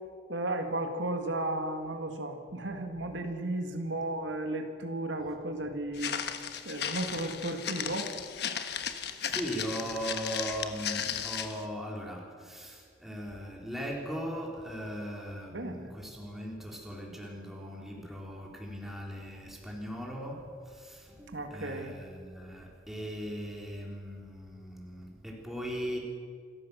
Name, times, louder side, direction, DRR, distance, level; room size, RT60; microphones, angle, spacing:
voice 1, 0.3-6.1 6.7-8.1 15.5-15.9 21.3-21.9, right 1 dB, 80° right, 5 dB, 2.0 m, -34 dB
Walk footsteps, 5.9-11.6, left 8 dB, 60° left, 1.3 m, -35 dB
voice 2, 9.2-26.0, equal, ahead, -1 dB, 3.4 m, -39 dB
26.5 x 14.0 x 6.8 m, 2.2 s
head